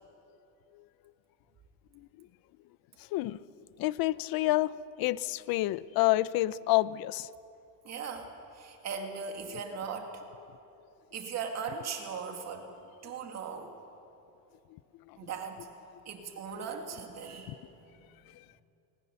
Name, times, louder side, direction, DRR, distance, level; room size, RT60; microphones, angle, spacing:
voice 1, 1.9-2.3 3.0-3.4 3.8-7.3 14.7-14.8 15.1-15.2 16.5-16.6 17.5-17.6 18.3-18.4, left 17 dB, 65° left, 18 dB, 0.6 m, -29 dB
voice 2, 7.8-10.2 11.1-12.7 13.0-13.7 15.2-15.7 16.0-18.1, right 6 dB, 45° right, 4 dB, 2.2 m, -39 dB
20.5 x 19.5 x 6.9 m, 2.8 s
cardioid pair, 160°, 38 cm